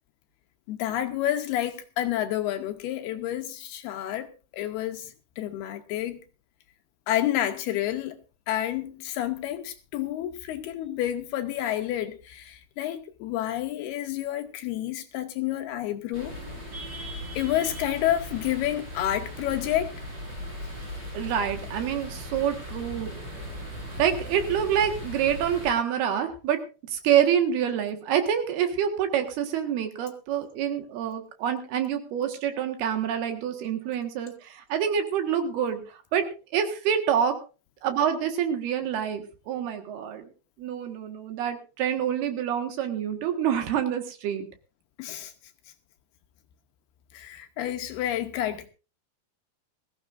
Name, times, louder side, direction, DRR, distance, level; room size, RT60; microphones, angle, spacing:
voice 1, 0.7-4.3 4.5-6.2 7.1-8.2 8.5-16.4 17.4-19.9 45.0-45.3 47.1-48.7, left 12 dB, 75° left, 2.5 m, -29 dB
sound 1, 16.1-25.7, equal, 20° right, 6.7 m, -38 dB
voice 2, 21.1-23.1 24.0-26.6 26.9-35.8 36.1-36.3 36.5-37.3 37.8-40.3 40.6-44.5, right 9 dB, 65° right, 3.3 m, -27 dB
20.5 x 15.0 x 2.6 m
omnidirectional pair, 5.3 m